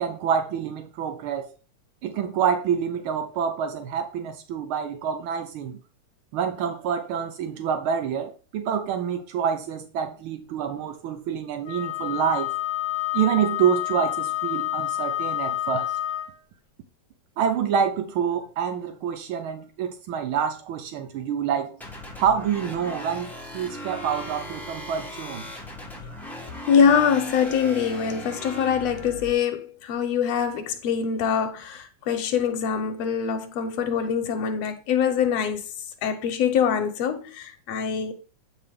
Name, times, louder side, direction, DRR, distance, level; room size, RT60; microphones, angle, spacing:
voice 1, 0.0-1.5 2.0-5.8 6.3-12.5 13.1-15.9 17.4-21.8 22.2-25.5, right 8 dB, 90° right, 1.1 m, -27 dB
Wind instrument woodwind instrument, 11.6-16.4, left 14 dB, 30° left, 1.6 m, -28 dB
sound 1, 21.8-29.3, left 1 dB, ahead, 0.4 m, -38 dB
voice 2, 26.7-35.6 36.0-38.1, left 7 dB, 70° left, 1.9 m, -24 dB
8.7 x 4.9 x 3.5 m
omnidirectional pair, 3.3 m